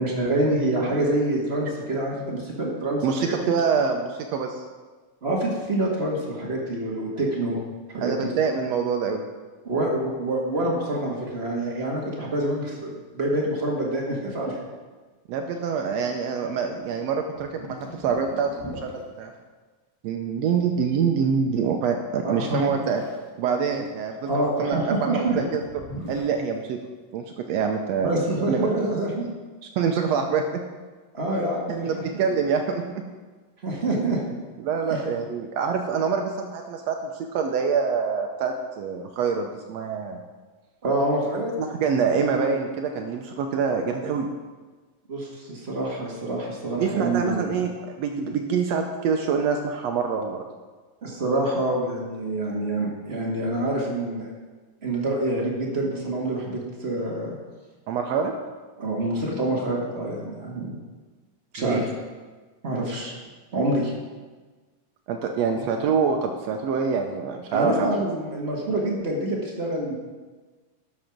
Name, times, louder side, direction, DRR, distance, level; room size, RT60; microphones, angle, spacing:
voice 1, 0.0-3.3 5.2-7.6 7.9-8.3 9.6-14.6 22.2-22.6 24.3-25.4 28.0-29.3 31.1-32.0 33.6-34.3 34.9-35.0 40.8-41.5 45.1-47.4 51.0-54.3 54.8-57.3 58.8-60.7 61.5-61.9 62.6-63.1 63.5-63.9 67.5-70.0, right 1 dB, 45° right, -2 dB, 0.8 m, -26 dB
voice 2, 3.0-4.6 8.0-9.2 15.3-19.3 20.0-23.0 23.4-25.6 26.1-26.8 27.1-28.1 28.5-28.7 29.6-30.6 31.7-33.0 34.6-40.2 41.6-44.3 46.8-47.7 48.0-50.4 57.9-58.3 61.6-61.8 65.1-67.9, right 6 dB, 85° right, 4 dB, 1.5 m, -25 dB
sound 1, 16.8-17.0 17.3-19.0 22.8-23.3 23.7-24.3 25.6-26.4, left 1 dB, 50° left, 0.4 m, -40 dB
11.5 x 6.4 x 5.9 m, 1.3 s
omnidirectional pair, 3.9 m